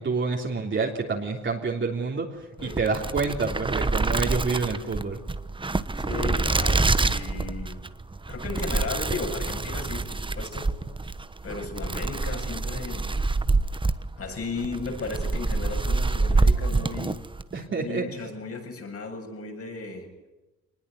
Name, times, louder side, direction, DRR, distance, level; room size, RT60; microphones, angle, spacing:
voice 1, 0.0-5.2 17.5-18.3, right 4 dB, 40° right, -1 dB, 3.4 m, -28 dB
sound 1, 2.6-17.5, right 3 dB, 15° right, 1.1 m, -26 dB
voice 2, 6.0-7.8 8.3-10.7 11.4-13.1 14.2-17.3 17.8-20.1, left 4 dB, 50° left, 4 dB, 7.6 m, -35 dB
24.0 x 20.5 x 9.6 m, 1.1 s
cardioid pair, 90°, 30 cm